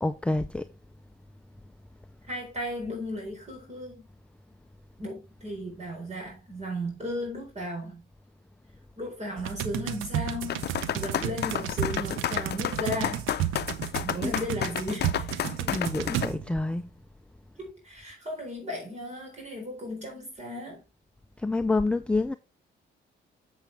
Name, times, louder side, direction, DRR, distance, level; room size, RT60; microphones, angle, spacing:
voice 1, 0.0-0.6 14.2-14.3 15.7-16.9 21.4-22.3, left 2 dB, 5° left, 0.5 m, -27 dB
voice 2, 2.3-4.1 5.0-8.0 9.0-13.3 14.0-15.6 17.6-20.8, left 1 dB, 35° right, 3.9 m, -35 dB
sound 1, 9.4-16.7, right 11 dB, 85° right, 0.8 m, -33 dB
sound 2, 10.5-16.3, left 10 dB, 55° left, 0.6 m, -31 dB
7.3 x 7.2 x 3.3 m
cardioid pair, 90°, 20 cm